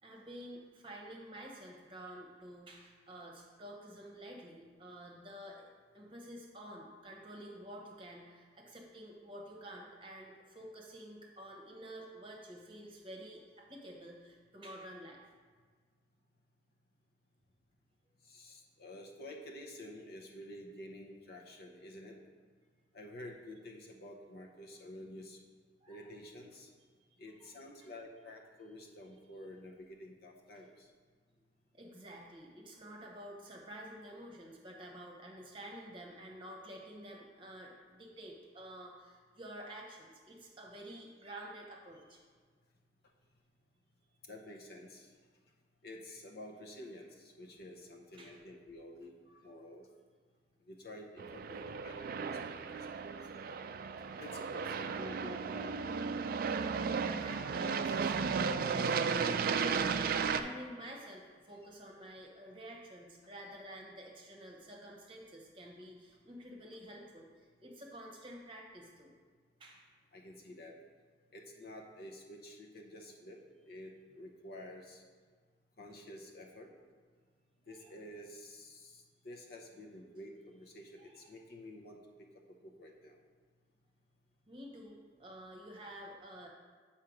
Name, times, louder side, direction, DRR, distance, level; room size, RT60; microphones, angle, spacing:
voice 1, 0.0-5.7 5.9-15.2 25.8-26.0 27.4-27.5 27.8-27.9 31.7-42.2 48.2-48.4 49.3-49.5 57.1-69.1 69.6-69.9 77.7-78.0 81.0-81.4 84.5-86.5, right 1 dB, 30° right, 0 dB, 0.9 m, -50 dB
voice 2, 18.2-22.2 22.9-25.4 25.9-26.7 27.2-30.9 44.3-45.1 45.8-49.1 49.4-49.9 50.7-53.2 53.5-53.6 54.2-55.7 70.1-70.7 71.3-75.0 75.8-76.7 77.7-83.2, left 1 dB, 60° left, 0 dB, 0.9 m, -50 dB
Aircraft, 51.2-60.4, right 5 dB, 55° right, 0.3 m, -34 dB
7.4 x 4.4 x 5.1 m, 1.5 s
head